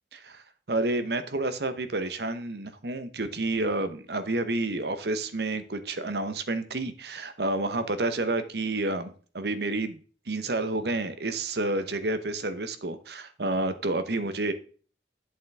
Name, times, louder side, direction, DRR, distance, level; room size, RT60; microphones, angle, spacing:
voice 1, 0.1-0.4 0.7-10.0 10.3-14.5, right 2 dB, 65° right, 1.0 m, -29 dB
8.6 x 7.5 x 3.5 m
head